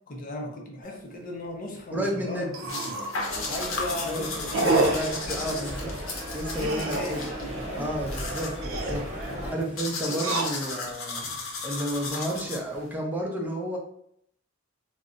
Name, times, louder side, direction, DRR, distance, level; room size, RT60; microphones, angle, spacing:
voice 1, 0.1-3.0 3.5-5.7 6.5-7.9 9.3-9.6 10.0-10.2, left 1 dB, 45° left, 1 dB, 0.5 m, -37 dB
sound 1, 0.8-1.0 1.4-1.5 1.8-1.9 2.5-3.2 3.6-3.9 4.5-5.2 6.5-7.3 8.5-9.1 10.1-10.9 11.5-12.1, right 2 dB, 75° right, 0.5 m, -28 dB
voice 2, 1.9-2.5 4.0-6.0 6.3-7.3 7.7-11.3 11.6-13.8, equal, 10° right, -1 dB, 0.5 m, -31 dB
sound 2, 2.7-12.9, left 3 dB, 80° left, 0.7 m, -36 dB
sound 3, 3.3-9.5, equal, 40° right, 0.9 m, -36 dB
2.4 x 2.0 x 3.7 m, 0.70 s
head